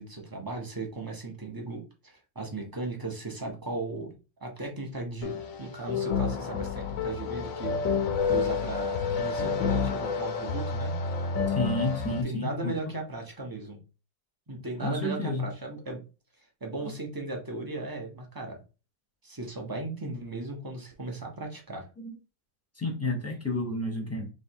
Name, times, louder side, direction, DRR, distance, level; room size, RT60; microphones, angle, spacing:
voice 1, 0.0-4.1 4.4-7.8 8.3-10.9 12.1-13.8 14.5-16.0 16.6-18.6 19.2-21.9, right 2 dB, 25° right, 1 dB, 0.4 m, -36 dB
sound 1, 5.2-12.2, left 5 dB, 60° left, 0.9 m, -29 dB
voice 2, 11.5-12.9 14.8-15.5 22.0-22.2 22.7-24.3, left 2 dB, 10° left, 1 dB, 0.8 m, -31 dB
3.4 x 3.2 x 4.5 m, 0.31 s
omnidirectional pair, 2.0 m